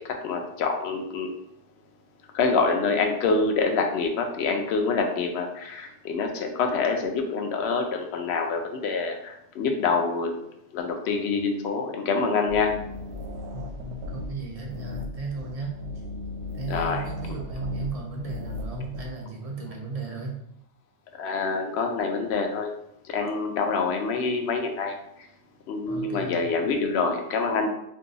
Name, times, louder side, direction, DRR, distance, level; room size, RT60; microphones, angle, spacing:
voice 1, 0.0-1.3 2.3-10.3 10.7-12.7 16.7-17.0 21.2-22.7 23.0-24.9 25.7-27.7, left 4 dB, 70° left, 3 dB, 0.8 m, -26 dB
sound 1, 12.5-19.0, left 2 dB, 70° right, 0.8 m, -36 dB
voice 2, 13.5-15.7 16.5-20.4 25.9-26.4, right 3 dB, 45° right, -1 dB, 0.5 m, -35 dB
2.6 x 2.2 x 3.9 m, 0.79 s
omnidirectional pair, 1.2 m